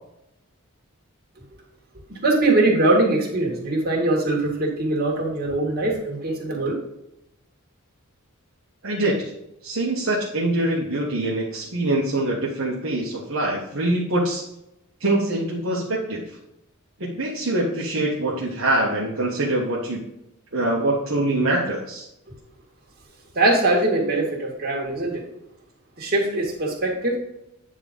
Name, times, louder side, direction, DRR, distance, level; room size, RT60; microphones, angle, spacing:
voice 1, 2.1-6.8 23.4-25.2 26.0-27.2, right 2 dB, 45° right, -2 dB, 2.1 m, -22 dB
voice 2, 8.8-9.3 9.6-14.4 15.0-16.2 17.0-20.0 20.5-22.1, right 1 dB, 60° right, -4 dB, 1.3 m, -24 dB
9.1 x 3.8 x 5.3 m, 0.86 s
head